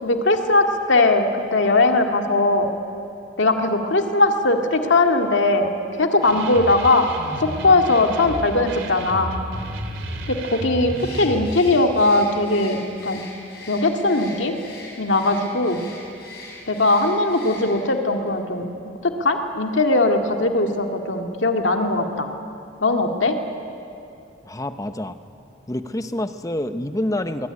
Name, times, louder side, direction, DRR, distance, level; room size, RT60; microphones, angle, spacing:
voice 1, 0.0-2.7 3.4-7.1 7.4-9.3 10.3-13.2 13.7-14.5 15.0-15.9 16.7-18.7 19.0-22.3 22.8-23.4, left 2 dB, 75° left, 4 dB, 2.1 m, -19 dB
sound 1, 6.2-11.5, right 1 dB, 85° right, 3.5 m, -32 dB
Bird, 10.9-18.0, left 3 dB, 55° left, 7.1 m, -41 dB
voice 2, 24.4-25.1 25.7-27.5, left 1 dB, 20° left, 9 dB, 0.9 m, -27 dB
23.0 x 22.5 x 9.9 m, 2.8 s
head